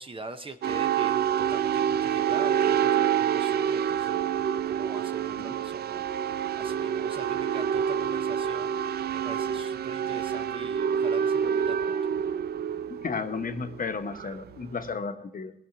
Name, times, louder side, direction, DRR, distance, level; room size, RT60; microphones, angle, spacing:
voice 1, 0.0-4.2 4.7-12.0, right 2 dB, 30° right, 7 dB, 0.7 m, -43 dB
sound 1, 0.6-14.9, right 8 dB, 65° right, 0.4 m, -27 dB
voice 2, 12.9-15.5, left 5 dB, 50° left, 7 dB, 1.0 m, -33 dB
17.5 x 6.2 x 5.8 m, 0.85 s
cardioid pair, 80°, 18 cm